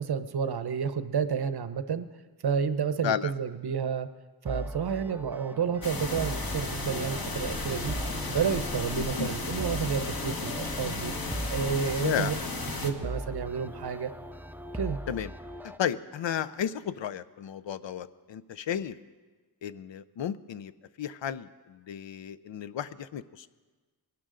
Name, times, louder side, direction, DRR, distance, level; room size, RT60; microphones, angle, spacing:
voice 1, 0.0-2.1 2.4-4.1 4.4-8.0 8.3-11.1 11.5-12.3 12.8-14.1 14.7-15.0, right 6 dB, 60° right, 12 dB, 0.7 m, -30 dB
sound 1, 4.4-15.8, right 1 dB, 5° right, 0.3 m, -40 dB
sound 2, 5.8-12.9, left 3 dB, 50° left, 1.3 m, -34 dB
voice 2, 9.0-9.3 12.0-12.3 15.1-15.3 15.8-19.0 19.6-20.7 21.0-23.5, left 9 dB, 75° left, 13 dB, 0.6 m, -33 dB
20.5 x 12.0 x 3.8 m, 1.3 s
wide cardioid pair, 85°, 45 cm